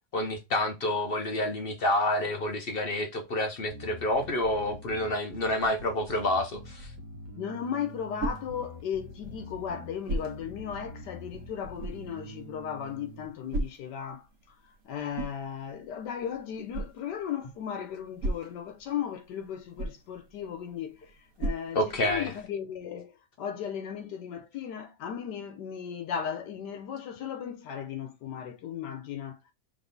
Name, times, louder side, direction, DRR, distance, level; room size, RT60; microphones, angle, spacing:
voice 1, 0.1-6.9 21.7-22.3, left 1 dB, 60° left, 0.6 m, -28 dB
Bass guitar, 3.7-13.3, equal, 80° right, 1.4 m, -45 dB
voice 2, 7.4-14.5 14.8-29.4, left 8 dB, 80° left, 1.3 m, -36 dB
sound 1, 7.5-22.4, right 2 dB, 60° right, 1.2 m, -40 dB
5.3 x 3.5 x 2.6 m
omnidirectional pair, 1.8 m